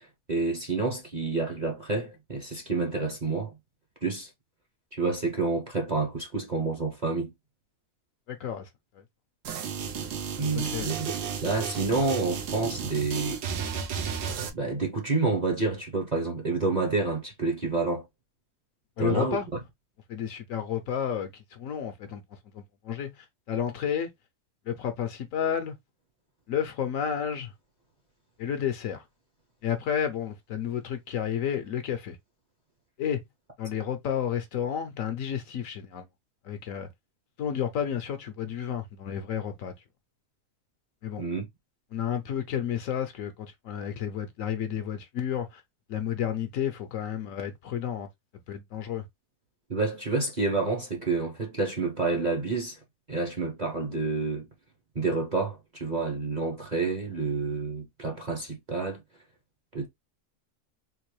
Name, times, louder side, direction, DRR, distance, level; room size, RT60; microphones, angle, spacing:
voice 1, 0.0-3.5 4.0-4.3 4.9-7.3 10.4-11.1 11.4-13.9 14.5-18.0 19.0-19.4 41.2-41.4 49.7-52.8 53.1-54.5 54.9-59.0 59.7-59.9, right 3 dB, 35° right, 0.7 m, -29 dB
voice 2, 8.3-8.7 8.9-9.0 10.6-10.9 19.0-19.5 20.1-22.2 22.5-24.1 24.7-25.7 26.5-27.5 28.4-29.0 29.6-32.2 33.0-33.2 33.6-36.1 36.4-36.9 37.4-39.7 41.0-41.2 41.9-45.6 45.9-48.1 48.5-49.0, left 9 dB, 65° left, 0.9 m, -31 dB
sound 1, 9.4-14.5, right 6 dB, 85° right, 1.3 m, -33 dB
3.7 x 2.6 x 3.0 m
omnidirectional pair, 1.6 m